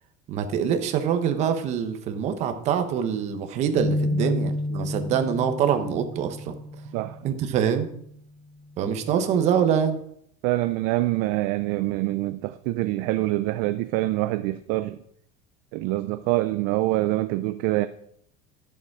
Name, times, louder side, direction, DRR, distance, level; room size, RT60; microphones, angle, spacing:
voice 1, 0.3-6.6 7.2-7.9 8.8-10.0, right 8 dB, 35° right, 1.0 m, -25 dB
sound 1, 3.8-7.3, left 1 dB, 70° left, 2.8 m, -29 dB
voice 2, 10.4-15.0 15.7-17.9, right 17 dB, 55° right, 0.4 m, -25 dB
11.5 x 7.0 x 4.7 m
cardioid pair, 175°, 19 cm